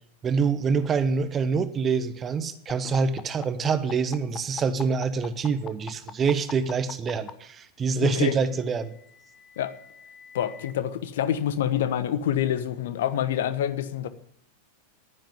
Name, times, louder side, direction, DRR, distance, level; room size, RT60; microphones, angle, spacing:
voice 1, 0.2-8.9, right 5 dB, 25° right, 13 dB, 1.1 m, -26 dB
sound 1, 2.7-7.3 8.5-10.7, left 7 dB, 25° left, 1.0 m, -41 dB
voice 2, 8.0-8.4 9.6-9.7 10.3-14.1, left 10 dB, 55° left, 13 dB, 1.0 m, -26 dB
11.0 x 10.5 x 9.7 m, 0.72 s
figure-of-eight pair, 90°, 0 cm